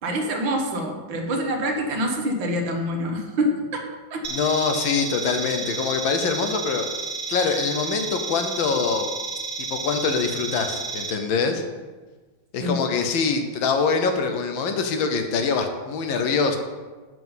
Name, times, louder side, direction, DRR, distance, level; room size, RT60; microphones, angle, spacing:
voice 1, 0.0-4.4 12.6-12.8, equal, 70° right, 3 dB, 1.7 m, -26 dB
sound 1, 4.2-11.1, right 4 dB, 50° right, 0.8 m, -31 dB
voice 2, 4.3-6.8 7.3-9.1 9.6-11.6 12.5-16.6, left 5 dB, 70° left, 6 dB, 1.4 m, -24 dB
7.3 x 5.9 x 5.5 m, 1.3 s
omnidirectional pair, 2.3 m